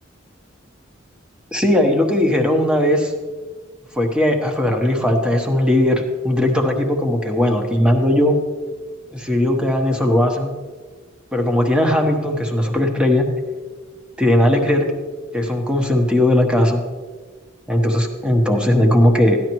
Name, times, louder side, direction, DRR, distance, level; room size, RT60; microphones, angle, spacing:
voice 1, 1.5-3.1 4.0-8.4 9.1-10.5 11.3-13.3 14.2-14.9 15.3-16.8 17.7-19.4, left 1 dB, 5° right, 2 dB, 1.1 m, -18 dB
13.5 x 10.5 x 3.1 m, 1.4 s
head